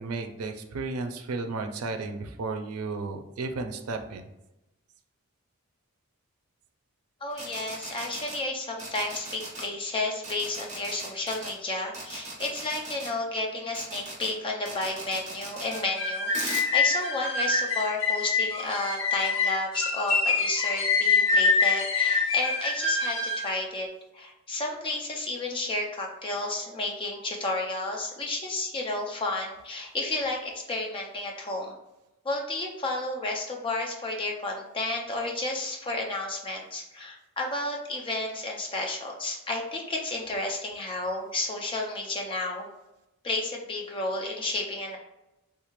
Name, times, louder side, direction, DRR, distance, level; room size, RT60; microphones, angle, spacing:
voice 1, 0.0-4.3, right 3 dB, 85° right, 6 dB, 0.4 m, -33 dB
voice 2, 7.2-23.9 24.1-31.7 32.2-42.7 43.2-45.0, left 2 dB, 25° left, 0 dB, 0.5 m, -32 dB
sound 1, 7.3-8.4 8.8-9.7 10.2-11.5 11.9-13.1 13.7-14.3 14.7-15.8 16.3-16.7, right 2 dB, 30° right, 0.9 m, -38 dB
sound 2, 15.7-23.5, left 4 dB, 65° left, 0.9 m, -25 dB
3.5 x 2.4 x 3.0 m, 0.94 s
head